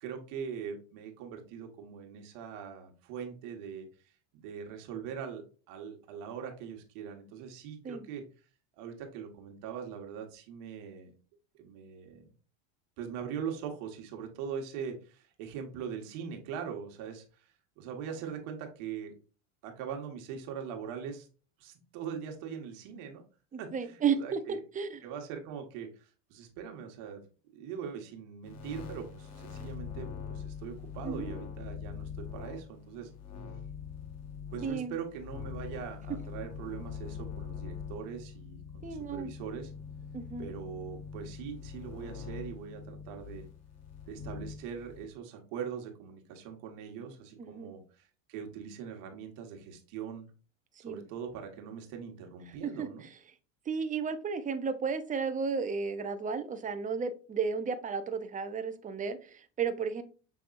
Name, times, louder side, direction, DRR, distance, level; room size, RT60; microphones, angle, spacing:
voice 1, 0.0-8.2 8.8-11.1 11.5-12.2 13.0-19.2 19.6-21.3 21.6-23.2 23.6-24.6 25.0-27.2 27.5-33.1 34.5-39.7 40.4-43.5 44.0-48.0 48.3-50.3 50.8-53.0, right 7 dB, 70° right, 4 dB, 1.5 m, -41 dB
voice 2, 23.5-25.0 31.0-31.4 34.6-34.9 38.8-39.3 40.1-40.5 47.4-47.7 50.8-51.0 52.6-52.9 53.7-60.0, right 6 dB, 20° right, 9 dB, 0.7 m, -33 dB
sound 1, 28.4-45.1, left 6 dB, 40° left, 1.4 m, -43 dB
6.0 x 3.4 x 2.5 m, 0.37 s
supercardioid pair, 100°, 37 cm